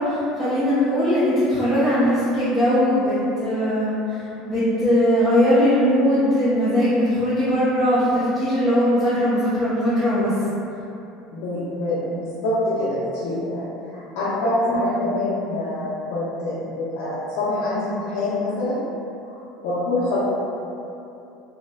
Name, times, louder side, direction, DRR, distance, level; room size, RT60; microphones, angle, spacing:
voice 1, 0.0-10.3, equal, 5° left, -15 dB, 0.6 m, -20 dB
voice 2, 11.3-18.8 19.3-19.4 19.6-20.2, left 1 dB, 75° left, -11 dB, 0.5 m, -25 dB
2.6 x 2.0 x 2.3 m, 2.8 s
supercardioid pair, 120°, 0 cm